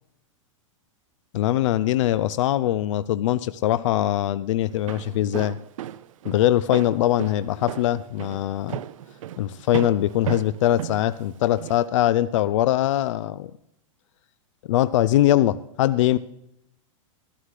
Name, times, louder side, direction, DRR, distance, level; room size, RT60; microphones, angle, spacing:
voice 1, 1.3-5.6 6.3-8.8 9.4-13.5 14.7-16.2, left 13 dB, 65° left, 15 dB, 0.4 m, -22 dB
Walk footsteps, 4.7-11.8, right 11 dB, 75° right, 0.5 m, -35 dB
13.0 x 12.5 x 3.3 m, 0.81 s
supercardioid pair, 160°, 17 cm